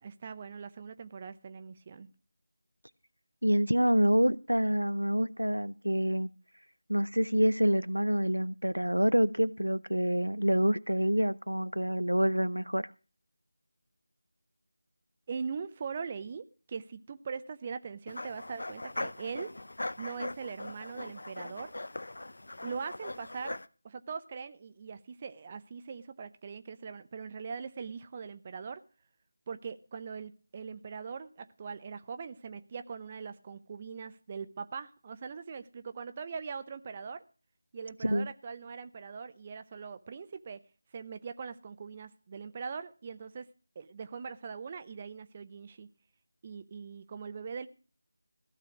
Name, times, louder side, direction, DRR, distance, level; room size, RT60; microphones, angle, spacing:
voice 1, 0.0-2.1 15.3-19.5 20.0-21.7 22.6-23.6 23.8-28.8 29.5-37.2 37.7-40.6 40.9-43.5 43.8-45.9 46.4-47.7, right 5 dB, 25° right, 10 dB, 0.7 m, -41 dB
voice 2, 3.4-6.3 6.9-12.9 38.0-38.3, equal, 90° right, 17 dB, 0.7 m, -27 dB
sound 1, 18.1-23.7, left 2 dB, 60° left, 0.7 m, -40 dB
15.5 x 6.7 x 6.1 m, 0.35 s
figure-of-eight pair, 165°, 0 cm